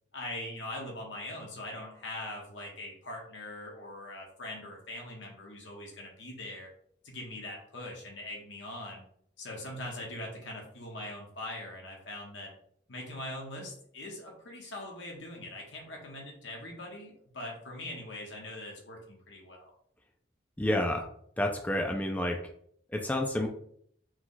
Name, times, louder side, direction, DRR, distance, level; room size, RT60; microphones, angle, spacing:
voice 1, 0.1-6.7 7.0-9.0 9.4-12.5 12.9-19.7, left 1 dB, 80° left, 0 dB, 1.3 m, -42 dB
voice 2, 20.6-21.1 21.4-22.4 22.9-23.5, left 1 dB, 10° left, 3 dB, 0.4 m, -29 dB
4.6 x 2.3 x 3.9 m, 0.64 s
head